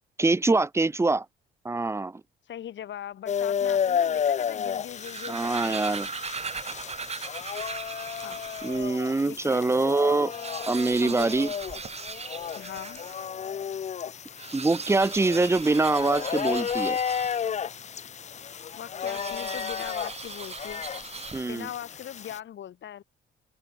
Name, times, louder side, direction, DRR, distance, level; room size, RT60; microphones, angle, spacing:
voice 1, 0.2-1.3 1.6-2.2 5.3-6.1 8.6-10.3 10.7-11.5 14.5-17.0 21.3-21.7, right 3 dB, 15° right, 0.5 m, -24 dB
voice 2, 2.5-5.8 8.2-8.4 9.2-9.7 11.0-11.3 12.6-13.0 18.7-20.8 21.5-23.0, left 10 dB, 65° left, 6.7 m, -40 dB
sound 1, 3.3-22.4, left 8 dB, 35° left, 0.5 m, -32 dB
sound 2, 4.8-8.9 9.5-9.6 9.8-9.9 10.2-13.3 14.3-17.7 19.0-21.7, right 5 dB, 30° right, 1.7 m, -39 dB
open air
cardioid pair, 90°, 20 cm